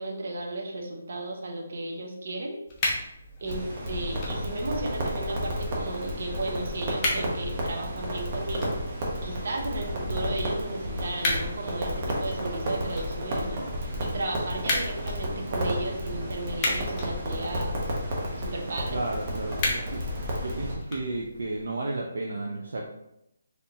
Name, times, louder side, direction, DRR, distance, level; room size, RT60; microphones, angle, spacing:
voice 1, 0.0-2.6 2.9-3.1 3.4-8.8 9.2-17.8 18.4-19.0, right 2 dB, 60° right, 0 dB, 1.0 m, -34 dB
sound 1, 2.7-21.6, left 2 dB, 25° left, 0.9 m, -37 dB
Crackle, 3.5-20.7, equal, 35° right, 1.1 m, -32 dB
voice 2, 18.9-20.0 20.4-22.9, right 2 dB, 75° right, -1 dB, 0.6 m, -32 dB
4.2 x 3.3 x 2.8 m, 0.82 s
hypercardioid pair, 160°, 0 cm